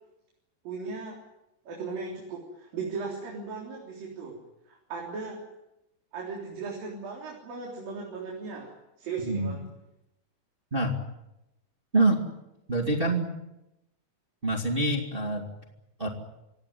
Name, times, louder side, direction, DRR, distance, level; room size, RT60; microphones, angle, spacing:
voice 1, 0.6-1.2 1.6-4.4 4.7-5.4 6.1-9.6, right 4 dB, 60° right, -1 dB, 5.3 m, -37 dB
voice 2, 9.2-9.6 10.7-11.0 11.9-12.2 12.7-13.3 14.4-15.5 16.0-16.1, right 2 dB, 15° right, 2 dB, 2.1 m, -25 dB
27.5 x 17.0 x 9.5 m, 0.90 s
omnidirectional pair, 4.7 m